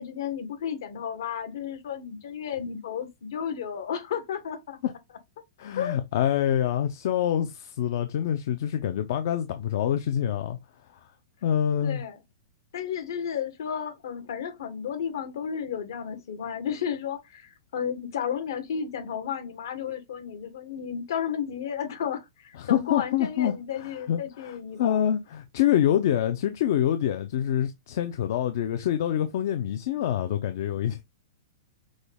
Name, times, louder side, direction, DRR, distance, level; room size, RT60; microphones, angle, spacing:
voice 1, 0.0-4.8 5.8-6.0 11.8-12.2 12.7-25.1, left 8 dB, 65° left, 1.2 m, -33 dB
voice 2, 5.6-10.6 11.4-12.0 22.6-23.5 23.8-31.0, left 10 dB, 50° left, 0.5 m, -26 dB
6.2 x 2.3 x 3.4 m
supercardioid pair, 170°, 2 cm